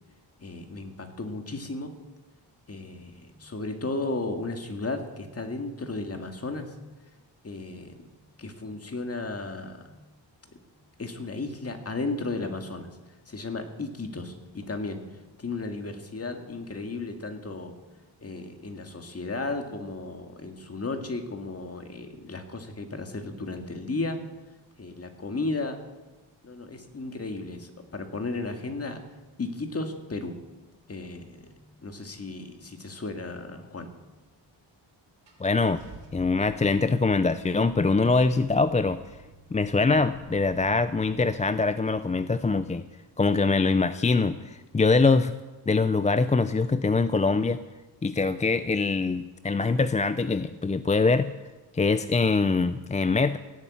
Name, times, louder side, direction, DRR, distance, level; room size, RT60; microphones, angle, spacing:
voice 1, 0.4-1.9 2.7-6.7 7.4-8.1 8.4-9.9 11.0-12.9 13.3-15.0 15.4-17.7 18.2-24.2 24.8-25.8 26.4-29.0 29.4-30.3 30.9-31.5 31.8-33.9, left 3 dB, 35° left, 5 dB, 2.0 m, -34 dB
Car / Engine starting, 34.5-34.6 35.3-41.4, right 4 dB, 70° right, 3.6 m, -51 dB
voice 2, 35.4-35.8 36.1-39.0 39.5-42.8 43.2-45.4 45.7-47.6 48.0-51.3 51.7-53.4, left 3 dB, 15° left, 12 dB, 0.4 m, -23 dB
17.0 x 9.2 x 8.6 m, 1.1 s
wide cardioid pair, 110°, 44 cm